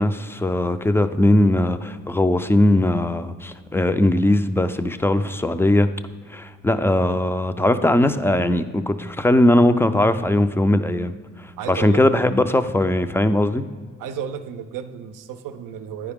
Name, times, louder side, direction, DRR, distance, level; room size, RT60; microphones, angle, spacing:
voice 1, 0.0-5.9 6.3-13.6, left 1 dB, 10° left, 10 dB, 0.4 m, -19 dB
voice 2, 11.6-12.0 14.0-16.1, right 8 dB, 80° right, 9 dB, 0.5 m, -33 dB
9.7 x 4.8 x 3.5 m, 1.5 s
cardioid pair, 65°, 32 cm